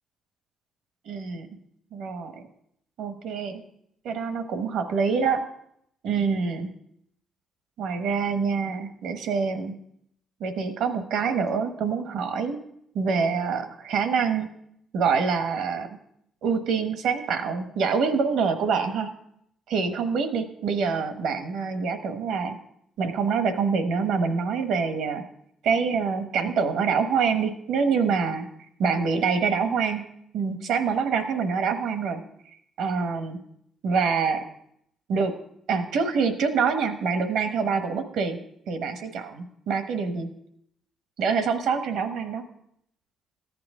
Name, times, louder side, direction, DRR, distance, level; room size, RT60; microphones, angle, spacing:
voice 1, 1.0-1.5 1.9-2.4 3.0-3.6 4.0-5.4 6.0-6.7 7.8-9.7 10.4-12.6 12.9-14.5 14.9-16.0 16.4-19.1 19.7-22.6 23.0-25.2 25.6-28.5 28.8-30.0 30.3-32.2 32.8-33.4 33.8-34.4 35.1-35.3 35.7-38.4 38.7-40.3 41.2-42.4, right 5 dB, 85° right, 8 dB, 1.1 m, -25 dB
14.0 x 8.8 x 3.7 m, 0.73 s
cardioid pair, 90°, 0 cm